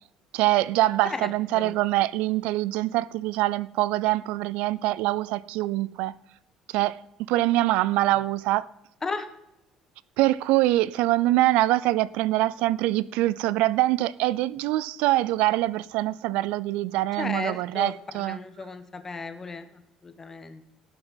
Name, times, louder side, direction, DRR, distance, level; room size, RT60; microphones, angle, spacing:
voice 1, 0.3-6.1 6.7-7.0 7.3-8.7 10.2-18.4, right 16 dB, 85° right, 0.4 m, -24 dB
voice 2, 1.0-1.8 9.0-9.3 17.2-20.7, left 4 dB, 20° left, 1.4 m, -35 dB
18.0 x 6.8 x 5.6 m
cardioid pair, 130°, 2 cm